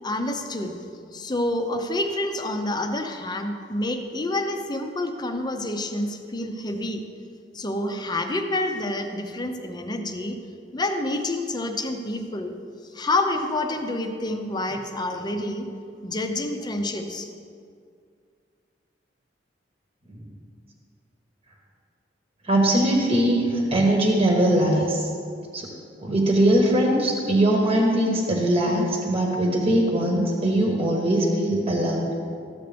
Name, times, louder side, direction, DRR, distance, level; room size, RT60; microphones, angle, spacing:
voice 1, 0.0-0.7 1.1-7.0 7.5-10.4 10.7-12.5 12.9-15.7 16.0-17.3, left 1 dB, 25° left, 5 dB, 0.7 m, -28 dB
voice 2, 22.5-25.1 25.5-25.7 26.0-32.0, right 1 dB, 30° right, -1 dB, 1.2 m, -21 dB
13.0 x 8.1 x 3.4 m, 2.3 s
head